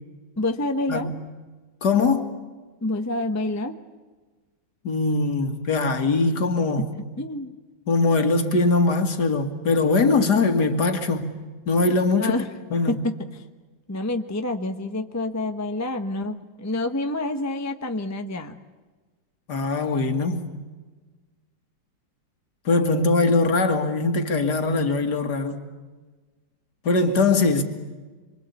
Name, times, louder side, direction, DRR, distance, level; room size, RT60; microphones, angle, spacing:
voice 1, 0.4-1.1 2.8-3.8 6.8-7.5 12.2-12.5 12.9-13.2 13.9-18.6, left 2 dB, 10° left, 0.8 m, -28 dB
voice 2, 1.8-2.3 4.8-6.9 7.9-11.3 11.7-12.3 12.7-13.0 19.5-20.5 22.7-25.6 26.8-27.6, left 3 dB, 60° left, 2.5 m, -21 dB
26.5 x 24.5 x 8.3 m
omnidirectional pair, 2.0 m